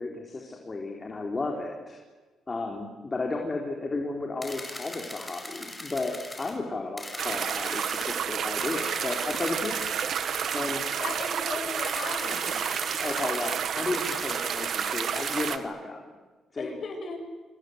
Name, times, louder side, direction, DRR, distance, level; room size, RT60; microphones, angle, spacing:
voice 1, 0.0-2.0 2.5-9.9 10.5-10.8 13.0-16.0 16.5-16.8, left 3 dB, 30° left, 1 dB, 3.7 m, -33 dB
sound 1, 4.4-6.5 7.0-8.2 8.6-11.4 11.8-13.6 13.9-15.5, left 2 dB, 10° left, 6.0 m, -40 dB
sound 2, 7.2-15.6, right 8 dB, 65° right, 1.5 m, -30 dB
voice 2, 11.0-12.6 16.6-17.2, left 4 dB, 55° left, 4 dB, 7.1 m, -36 dB
27.0 x 26.5 x 8.1 m, 1.3 s
cardioid pair, 90°, 0 cm